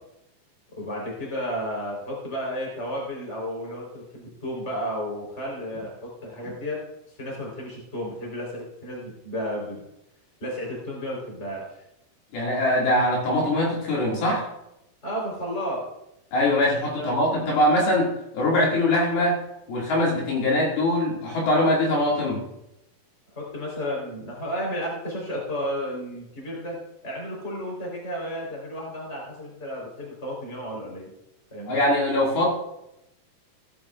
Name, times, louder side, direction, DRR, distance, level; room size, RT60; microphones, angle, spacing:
voice 1, 0.7-6.8 7.2-9.8 10.4-11.7 15.0-15.9 17.0-17.4 23.4-26.8 27.0-31.1 31.5-31.8, equal, 15° left, -3 dB, 3.7 m, -32 dB
voice 2, 12.3-14.4 16.3-19.4 19.7-22.4 31.7-32.5, left 1 dB, 65° left, -4 dB, 4.0 m, -22 dB
17.0 x 12.0 x 2.4 m, 0.87 s
omnidirectional pair, 4.8 m